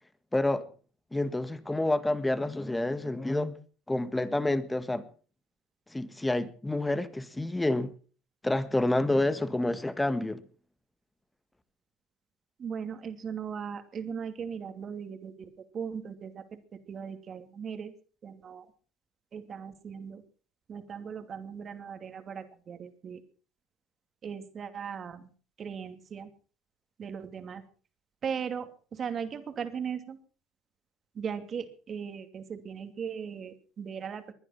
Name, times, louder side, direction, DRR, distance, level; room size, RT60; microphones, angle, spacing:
voice 1, 0.3-0.7 1.1-3.6 3.9-5.1 5.9-7.9 8.4-10.4, left 2 dB, 10° left, 1.6 m, -28 dB
voice 2, 12.6-15.3 15.7-16.3 16.9-17.9 18.2-18.6 19.3-20.2 20.7-23.2 24.2-25.3 25.6-26.3 27.0-27.6 28.2-28.7 28.9-30.2 31.2-34.2, right 7 dB, 40° right, 2.6 m, -38 dB
21.0 x 11.0 x 5.8 m
supercardioid pair, 100°, 0 cm